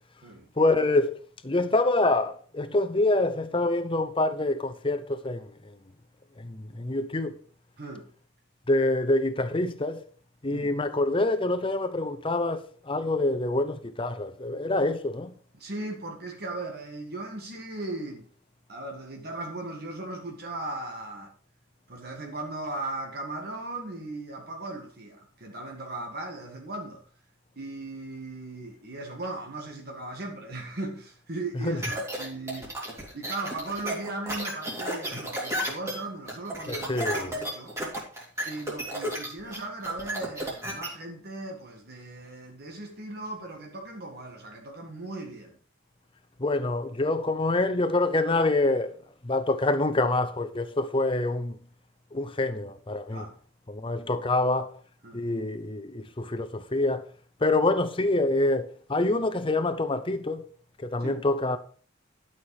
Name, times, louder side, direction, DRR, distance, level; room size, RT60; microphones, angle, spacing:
voice 1, 0.6-1.2 1.4-5.5 6.4-7.4 8.7-10.0 10.4-15.3 31.5-31.8 36.7-37.3 46.4-49.0 49.2-51.6 52.1-53.2 53.7-54.7 55.1-57.0 57.4-60.4 60.8-61.6, left 2 dB, 25° left, 0.8 m, -26 dB
voice 2, 7.8-8.1 10.5-10.8 15.5-18.3 18.7-21.3 21.9-27.0 27.6-32.7 33.1-37.7 38.4-45.6 53.1-53.4 55.0-55.3 61.0-61.2, right 2 dB, 50° right, 1.8 m, -37 dB
sound 1, 31.8-40.9, equal, 15° right, 2.6 m, -33 dB
11.5 x 6.0 x 4.8 m
head